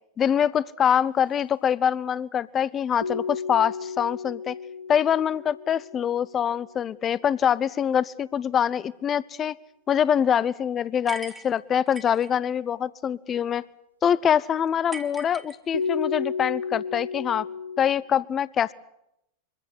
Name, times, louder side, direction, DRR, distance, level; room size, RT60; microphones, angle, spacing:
voice 1, 0.2-4.6 4.9-9.5 9.9-13.6 14.0-17.5 17.8-18.7, left 8 dB, 25° left, 21 dB, 0.8 m, -24 dB
sound 1, 3.0-7.1 15.7-17.9, left 5 dB, 90° left, 1.3 m, -33 dB
sound 2, 11.1-12.3 14.9-16.1, right 2 dB, 10° right, 1.8 m, -40 dB
24.0 x 16.0 x 9.6 m, 0.82 s
figure-of-eight pair, 90°, 0 cm